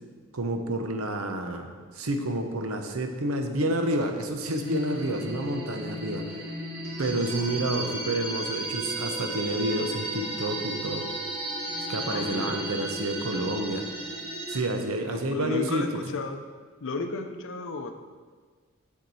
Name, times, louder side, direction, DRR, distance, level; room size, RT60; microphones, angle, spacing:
voice 1, 0.3-6.5 7.0-11.1 11.9-13.8 14.5-16.1, right 1 dB, 70° right, 5 dB, 0.8 m, -29 dB
sound 1, 4.6-14.6, right 1 dB, 30° right, 1.9 m, -34 dB
voice 2, 12.1-12.6 15.1-16.4 16.8-18.0, left 3 dB, 60° left, 7 dB, 0.6 m, -34 dB
7.2 x 6.5 x 4.1 m, 1.5 s
head